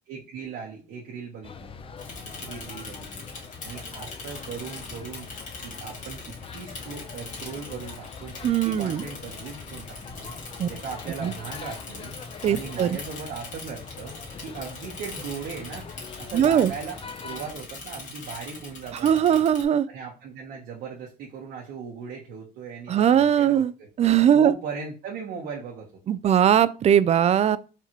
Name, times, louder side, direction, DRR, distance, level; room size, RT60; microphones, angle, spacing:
voice 1, 0.0-1.7 2.2-3.3 3.6-5.3 5.6-10.3 10.7-12.2 12.5-14.2 14.4-15.9 16.2-19.4 19.9-23.9 24.3-25.9, right 5 dB, 75° right, 1.2 m, -38 dB
sound 1, 1.4-17.5, left 5 dB, 35° left, 0.5 m, -43 dB
Bicycle / Mechanisms, 2.0-19.6, left 3 dB, 50° left, 1.7 m, -42 dB
voice 2, 8.4-9.0 10.6-10.7 11.2-11.3 12.4-13.0 16.3-16.7 19.0-19.9 22.9-23.7 24.0-24.5 26.1-27.6, right 9 dB, 40° right, 0.4 m, -20 dB
4.7 x 3.4 x 3.0 m
cardioid pair, 110°, 17 cm